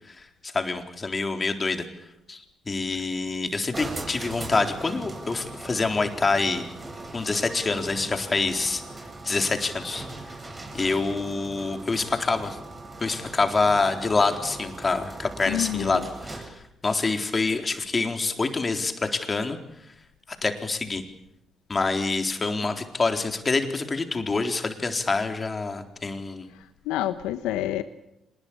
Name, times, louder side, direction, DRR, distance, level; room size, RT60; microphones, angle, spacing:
voice 1, 0.5-1.9 2.3-6.7 7.1-8.8 9.2-10.3 10.7-12.6 13.0-19.6 20.3-21.0 21.7-26.5, left 3 dB, 35° left, 6 dB, 3.9 m, -26 dB
sound 1, 3.7-16.7, right 2 dB, 30° right, 8.0 m, -39 dB
voice 2, 15.5-16.1 26.9-27.8, left 13 dB, 80° left, 12 dB, 1.0 m, -28 dB
25.5 x 20.5 x 8.7 m, 0.85 s
hypercardioid pair, 50°, 0 cm